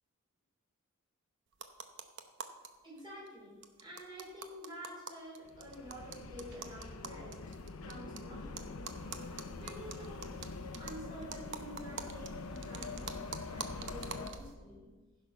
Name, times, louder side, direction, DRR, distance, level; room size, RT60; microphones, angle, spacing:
sound 1, 1.5-2.7 3.0-3.1 3.3-3.4 3.6-8.2 8.6-14.5, right 6 dB, 55° right, 0.8 m, -46 dB
voice 1, 2.8-7.5 7.8-8.6 9.5-14.9, equal, 20° right, -5 dB, 4.3 m, -49 dB
sound 2, 5.4-14.3, left 3 dB, 80° left, 0.7 m, -45 dB
15.0 x 6.0 x 5.6 m, 1.3 s
head